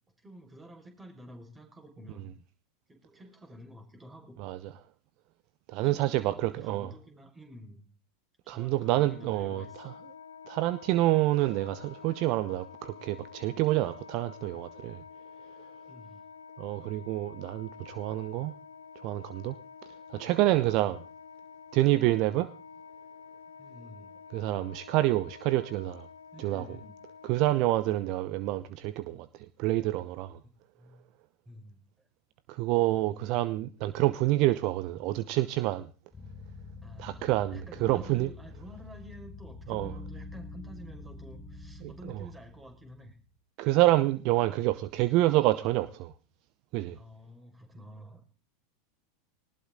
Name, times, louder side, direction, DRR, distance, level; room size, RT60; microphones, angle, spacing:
voice 1, 0.2-2.3 2.9-4.4 5.8-7.9 8.5-10.0 15.9-16.2 23.6-24.2 26.3-26.9 30.8-31.0 31.5-32.1 36.8-43.2 46.9-48.3, equal, 15° right, 5.4 m, -50 dB
voice 2, 5.7-6.9 8.5-9.6 10.5-15.0 16.6-18.5 19.0-19.5 20.1-21.0 21.7-22.5 24.3-26.1 26.4-26.6 27.2-29.3 29.6-30.4 32.5-35.9 37.0-38.3 39.7-39.9 41.8-41.9 43.6-46.1 46.7-47.0, right 16 dB, 50° right, 0.9 m, -27 dB
Wind instrument woodwind instrument, 8.7-28.2, left 6 dB, 80° left, 2.1 m, -49 dB
sound 1, 36.1-43.2, left 3 dB, 15° left, 5.1 m, -46 dB
19.5 x 18.5 x 3.9 m
figure-of-eight pair, 85°, 0 cm